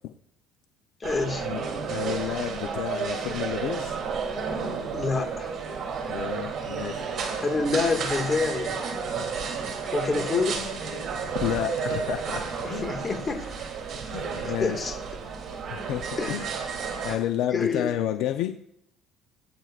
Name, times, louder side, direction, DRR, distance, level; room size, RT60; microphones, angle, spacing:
voice 1, 1.0-1.5 4.9-5.5 7.4-8.8 9.9-10.7 12.6-13.5 14.4-15.0 16.2-16.4 17.1-17.2 17.5-18.0, left 4 dB, 25° left, 4 dB, 1.9 m, -27 dB
sound 1, 1.0-17.2, right 5 dB, 50° right, 2.9 m, -32 dB
voice 2, 1.9-4.0 6.1-7.0 11.4-12.9 14.1-14.8 15.7-16.5 17.0-18.6, left 11 dB, 75° left, 6 dB, 0.7 m, -30 dB
21.0 x 9.4 x 2.5 m, 0.75 s
cardioid pair, 120°, 0 cm